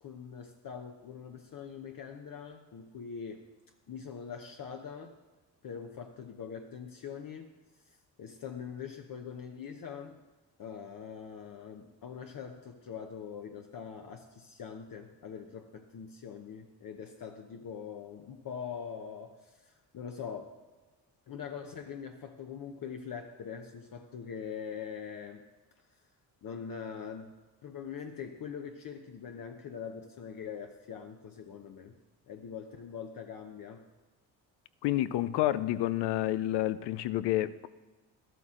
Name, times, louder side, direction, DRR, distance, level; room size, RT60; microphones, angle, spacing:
voice 1, 0.0-3.4 3.9-5.2 5.6-7.5 7.9-10.2 10.6-20.5 21.3-25.4 26.4-27.3 27.6-32.0 32.3-33.8, left 7 dB, 55° left, 4 dB, 0.9 m, -43 dB
voice 2, 34.8-37.7, left 14 dB, 90° left, 16 dB, 0.6 m, -29 dB
13.0 x 12.5 x 3.8 m, 1.3 s
cardioid pair, 100°, 40 cm